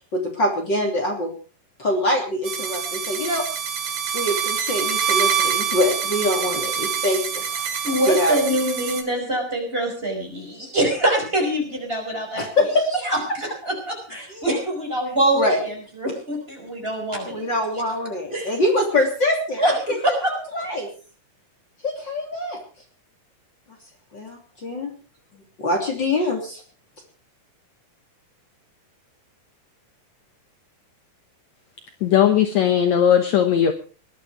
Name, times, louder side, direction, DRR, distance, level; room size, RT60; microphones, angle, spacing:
voice 1, 0.1-1.3 1.8-3.4 4.1-7.4 8.1-8.4 12.4-12.8 14.3-14.4 15.3-15.6 17.2-19.7 20.5-20.9 21.8-22.6 24.1-24.9 25.6-26.6, left 1 dB, 35° left, 1 dB, 3.5 m, -24 dB
sound 1, 2.4-9.0, right 7 dB, 60° right, 3.9 m, -26 dB
voice 2, 7.8-12.4 12.9-17.4 18.3-18.5 19.6-20.6, right 1 dB, 15° right, 1 dB, 5.3 m, -24 dB
voice 3, 32.0-33.7, left 9 dB, 65° left, 8 dB, 2.1 m, -17 dB
20.0 x 11.5 x 5.0 m, 0.38 s
omnidirectional pair, 3.9 m